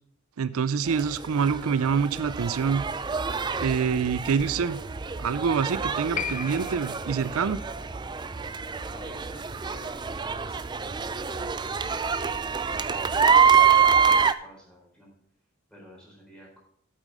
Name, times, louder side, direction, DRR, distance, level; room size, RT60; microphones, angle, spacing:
voice 1, 0.4-2.8 3.6-4.8 5.2-7.6, right 6 dB, 85° right, 15 dB, 0.4 m, -26 dB
sound 1, 0.9-14.3, right 6 dB, 20° right, 0.3 m, -26 dB
Piano, 6.1-13.1 13.4-13.5, left 8 dB, 35° left, 0.5 m, -41 dB
voice 2, 8.9-15.1 15.7-16.6, equal, 5° left, -4 dB, 4.1 m, -51 dB
8.7 x 8.2 x 5.4 m, 0.67 s
head